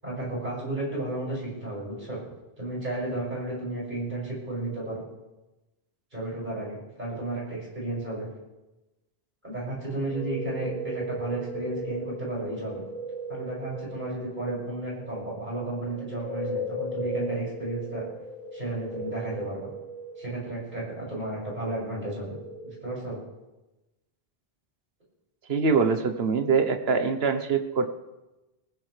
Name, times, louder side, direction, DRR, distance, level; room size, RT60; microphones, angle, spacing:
voice 1, 0.0-2.2 2.6-5.0 6.1-8.3 9.4-12.8 13.3-18.0 18.5-19.7 20.2-22.4 22.6-23.2, right 2 dB, 50° right, -5 dB, 6.9 m, -33 dB
sound 1, 10.1-22.7, right 1 dB, 5° left, 6.8 m, -37 dB
voice 2, 25.5-27.9, right 5 dB, 75° right, 8 dB, 1.4 m, -24 dB
20.5 x 15.0 x 3.5 m, 1.0 s
omnidirectional pair, 1.1 m